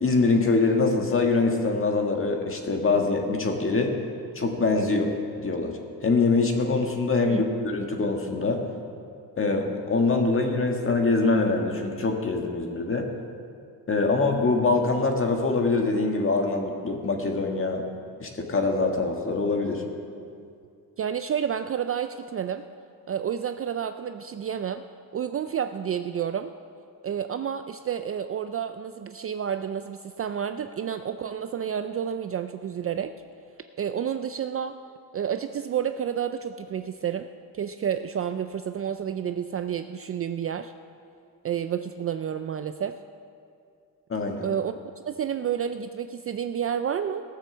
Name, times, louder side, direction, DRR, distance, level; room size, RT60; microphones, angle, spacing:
voice 1, 0.0-3.9 4.4-5.1 5.4-8.6 9.4-13.1 13.9-17.8 18.2-19.8 44.1-44.4, left 3 dB, 30° left, 2 dB, 1.7 m, -24 dB
voice 2, 21.0-22.6 23.1-24.8 25.1-26.5 27.0-33.1 33.8-34.8 35.1-37.3 37.5-40.7 41.4-43.0 44.4-44.7 45.1-47.2, right 8 dB, 35° right, 9 dB, 0.4 m, -30 dB
17.0 x 6.8 x 7.2 m, 2.4 s
cardioid pair, 115°, 40 cm